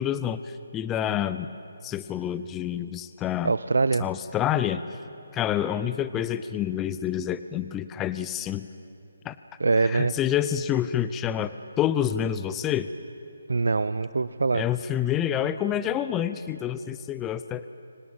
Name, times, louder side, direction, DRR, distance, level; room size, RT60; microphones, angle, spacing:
voice 1, 0.0-1.5 1.8-3.6 4.0-4.8 5.3-8.7 9.2-9.4 9.8-11.5 11.8-12.9 14.5-17.7, left 10 dB, 15° left, 13 dB, 0.5 m, -28 dB
voice 2, 3.4-4.1 9.6-10.1 13.5-14.6, right 3 dB, 80° right, 13 dB, 0.6 m, -23 dB
25.0 x 18.0 x 8.8 m, 2.6 s
hypercardioid pair, 155°, 0 cm